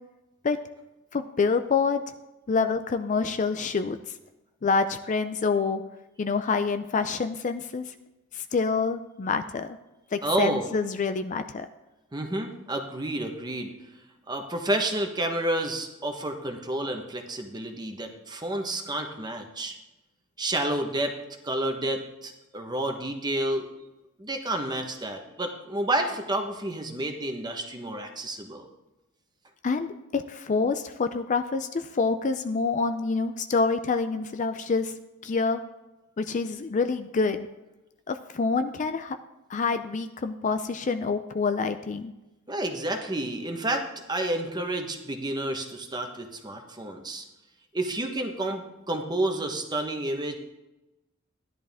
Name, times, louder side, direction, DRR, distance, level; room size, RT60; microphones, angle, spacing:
voice 1, 1.1-2.0 2.5-4.0 4.6-5.8 6.2-7.9 8.3-9.8 10.1-11.7 29.6-34.9 35.2-35.6 36.2-37.5 38.1-39.2 39.5-42.1, left 4 dB, 35° left, 9 dB, 0.4 m, -27 dB
voice 2, 10.2-10.6 12.1-13.7 14.3-19.7 20.4-21.1 21.4-23.7 24.2-28.7 42.5-47.2 47.7-50.4, right 1 dB, 20° right, 4 dB, 1.1 m, -30 dB
13.0 x 11.0 x 3.5 m, 1.0 s
head